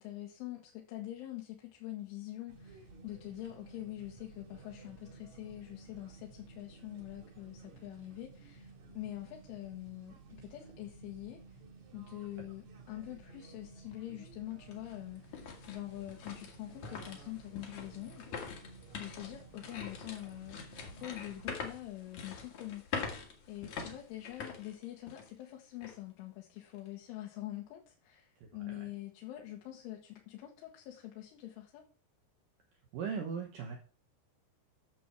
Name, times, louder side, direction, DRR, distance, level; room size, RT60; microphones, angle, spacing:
voice 1, 0.0-11.6 11.9-18.3 18.9-20.6 21.0-31.8, left 15 dB, 85° left, 3.7 m, -45 dB
sound 1, 2.5-21.7, right 4 dB, 50° right, 2.7 m, -54 dB
sound 2, 13.9-14.0 14.5-25.4 25.8-25.9 26.5-26.9, left 5 dB, 55° left, 2.1 m, -44 dB
voice 2, 28.4-28.9 32.9-33.8, right 6 dB, 85° right, 1.9 m, -39 dB
9.2 x 7.2 x 4.6 m
omnidirectional pair, 5.5 m